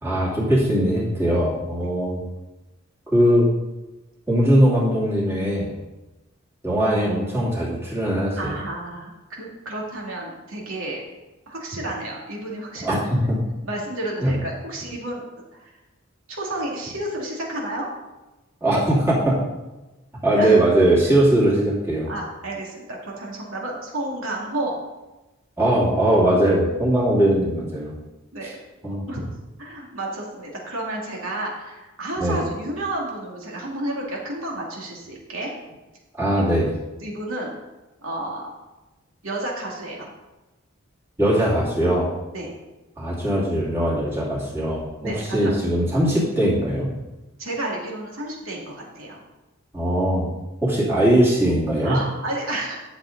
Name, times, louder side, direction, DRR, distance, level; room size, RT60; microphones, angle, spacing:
voice 1, 0.0-2.2 3.1-3.5 4.3-5.7 6.6-8.6 12.8-13.4 14.2-14.3 18.6-19.4 20.2-22.1 25.6-27.9 28.8-29.0 32.2-32.4 36.2-36.7 41.2-42.1 43.0-46.9 49.7-50.3 50.6-52.0, right 1 dB, 10° right, -6 dB, 2.7 m, -20 dB
voice 2, 8.4-11.0 11.5-13.1 13.6-15.2 15.5-15.7 16.3-17.9 20.4-20.6 22.1-24.8 28.3-28.6 29.1-29.2 29.6-35.5 36.4-36.5 37.0-37.6 38.0-38.5 39.2-40.1 42.3-42.5 45.0-45.6 47.4-49.2 51.8-52.8, right 1 dB, 75° right, -2 dB, 2.4 m, -31 dB
11.0 x 7.1 x 4.0 m, 1.1 s
head